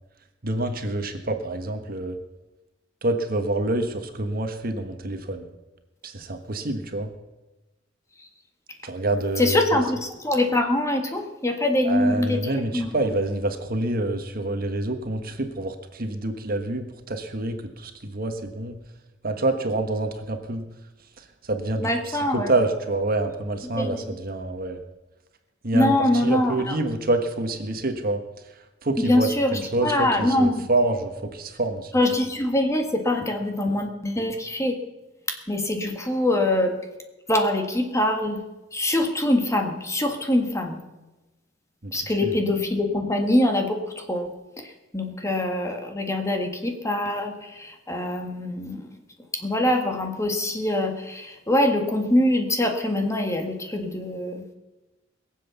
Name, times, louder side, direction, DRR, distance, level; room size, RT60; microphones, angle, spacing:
voice 1, 0.4-2.2 3.0-5.5 6.0-7.1 8.8-9.8 11.8-18.8 19.2-20.6 21.2-24.8 25.6-26.0 26.2-28.2 28.8-31.9 41.8-42.4, right 2 dB, 50° right, 6 dB, 1.4 m, -27 dB
voice 2, 9.4-12.4 12.7-12.9 21.8-22.5 23.6-24.2 25.7-26.8 29.0-30.7 31.9-34.8 35.3-36.7 37.3-38.4 38.7-40.8 41.9-48.9 49.3-54.5, left 1 dB, 15° left, 3 dB, 1.7 m, -24 dB
21.5 x 7.8 x 7.0 m, 1.1 s
head